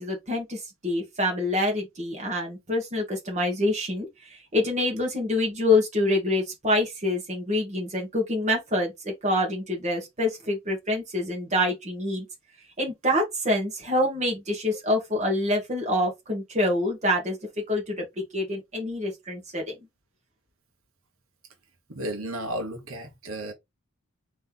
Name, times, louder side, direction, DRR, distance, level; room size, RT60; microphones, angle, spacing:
voice 1, 0.0-4.1 4.5-12.3 12.8-17.4 17.7-19.6, left 1 dB, 35° right, 2.0 m, -26 dB
voice 2, 21.9-23.5, right 1 dB, 90° right, 1.3 m, -33 dB
4.1 x 3.3 x 3.8 m
head